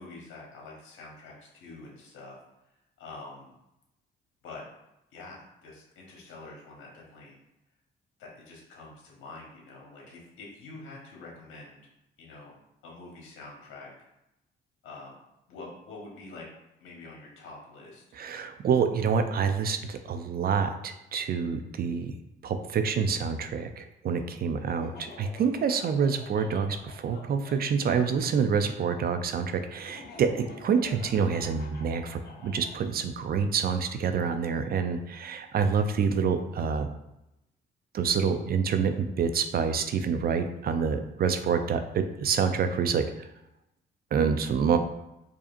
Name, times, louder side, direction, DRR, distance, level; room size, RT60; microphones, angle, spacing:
voice 1, 0.0-2.4 3.0-3.5 4.4-4.6 5.1-7.3 8.2-11.8 12.2-12.5 12.8-13.9 14.8-15.1 15.5-16.5 16.8-18.0, left 3 dB, 85° left, -2 dB, 1.2 m, -46 dB
voice 2, 18.1-22.1 22.4-36.9 37.9-43.1 44.1-44.8, right 6 dB, 50° right, 8 dB, 0.4 m, -27 dB
Laughter, 24.7-28.3 29.9-32.8, left 3 dB, 55° left, 0.8 m, -48 dB
4.8 x 2.7 x 2.5 m, 0.88 s
cardioid pair, 90°, 20 cm